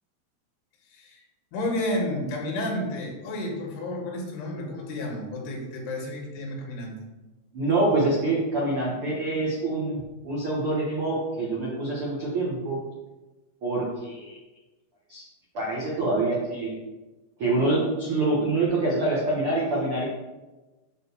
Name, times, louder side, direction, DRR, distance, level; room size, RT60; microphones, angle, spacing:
voice 1, 0.9-1.2 1.5-6.9, left 1 dB, 75° left, -1 dB, 3.7 m, -31 dB
voice 2, 7.5-12.8 13.6-14.4 15.1-15.2 15.5-16.7 17.4-20.1, right 2 dB, 70° right, -5 dB, 1.3 m, -26 dB
7.9 x 4.2 x 5.6 m, 1.1 s
omnidirectional pair, 4.8 m